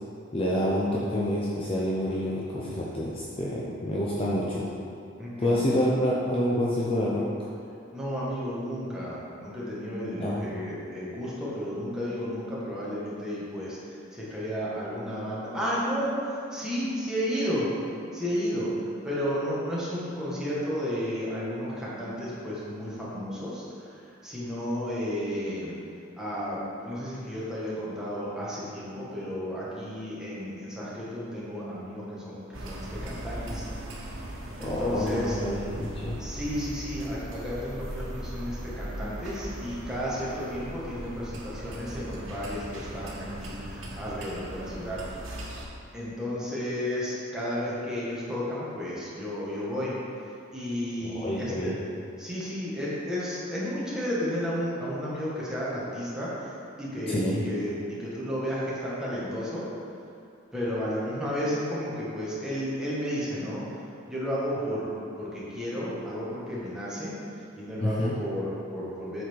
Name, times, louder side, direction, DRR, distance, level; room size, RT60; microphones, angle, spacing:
voice 1, 0.3-4.7 5.4-7.2 10.1-10.4 34.6-36.2 51.0-51.8 57.1-57.4 67.8-68.1, equal, 30° left, -5 dB, 0.7 m, -28 dB
voice 2, 5.2-5.6 7.9-17.7 18.1-25.8 26.2-33.6 34.6-35.4 36.2-45.0 45.9-49.9 50.5-51.7 52.2-59.6 60.5-63.6 64.1-64.9 65.2-67.2 67.6-69.2, equal, 5° right, -8 dB, 1.7 m, -32 dB
sound 1, 32.5-45.7, equal, 85° right, 1.2 m, -39 dB
8.1 x 4.3 x 4.7 m, 2.5 s
head